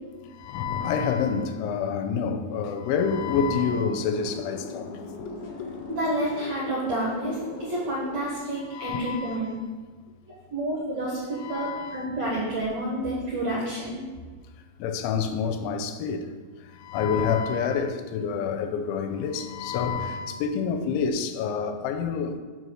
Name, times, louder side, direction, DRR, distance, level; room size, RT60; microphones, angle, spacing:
voice 1, 0.3-4.9 5.2-5.3 8.7-9.4 11.4-12.1 14.8-16.3 16.7-22.4, left 6 dB, 85° left, 3.0 m, -28 dB
sound 1, 3.0-8.2, left 3 dB, 65° left, 2.2 m, -40 dB
voice 2, 5.9-9.5 10.5-14.0, right 1 dB, 65° right, 1.7 m, -29 dB
7.9 x 5.5 x 6.3 m
omnidirectional pair, 5.3 m